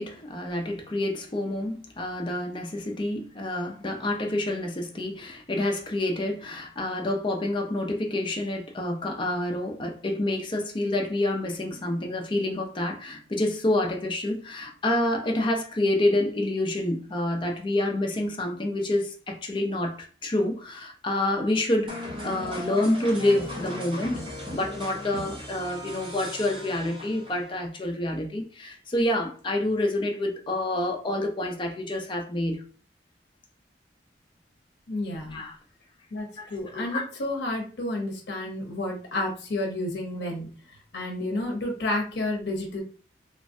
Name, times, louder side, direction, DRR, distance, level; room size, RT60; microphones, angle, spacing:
voice 1, 0.0-20.0 20.2-21.9 22.2-24.2 24.5-32.6 35.3-35.5 36.4-37.0, left 1 dB, 30° left, 0.5 m, -28 dB
sound 1, 21.9-27.5, left 1 dB, 30° right, 0.9 m, -37 dB
voice 2, 34.9-35.4 36.1-42.8, left 1 dB, 70° left, 0.7 m, -31 dB
3.1 x 2.2 x 2.6 m
head